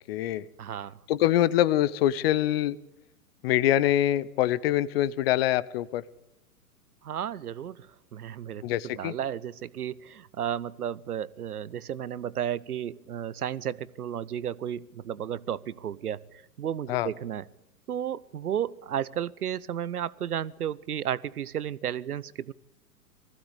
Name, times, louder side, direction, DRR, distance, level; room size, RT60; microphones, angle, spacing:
voice 1, 0.1-0.5 1.1-2.8 3.4-6.0 8.6-9.1 16.9-17.1, left 13 dB, 40° left, 20 dB, 0.8 m, -24 dB
voice 2, 0.6-1.0 7.0-8.6 9.0-17.4 17.9-22.5, right 9 dB, 75° right, 21 dB, 0.8 m, -33 dB
20.5 x 15.5 x 8.3 m, 0.95 s
figure-of-eight pair, 115°, 45 cm